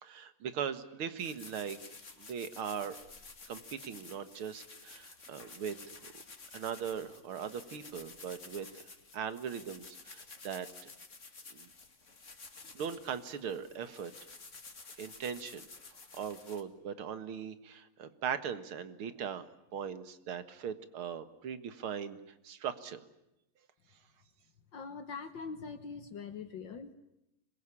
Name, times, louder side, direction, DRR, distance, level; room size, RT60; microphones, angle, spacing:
voice 1, 0.0-1.8 2.2-3.0 3.5-6.2 6.5-8.8 9.1-10.9 11.5-11.7 12.7-14.1 15.0-15.6 16.1-19.5 19.7-22.2 22.4-23.0, right 7 dB, 80° right, 12 dB, 2.4 m, -39 dB
sound 1, 1.2-16.6, left 4 dB, 35° left, 2.5 m, -52 dB
voice 2, 24.7-26.9, left 5 dB, 60° left, 9 dB, 1.9 m, -43 dB
26.0 x 22.0 x 9.9 m, 0.87 s
omnidirectional pair, 2.3 m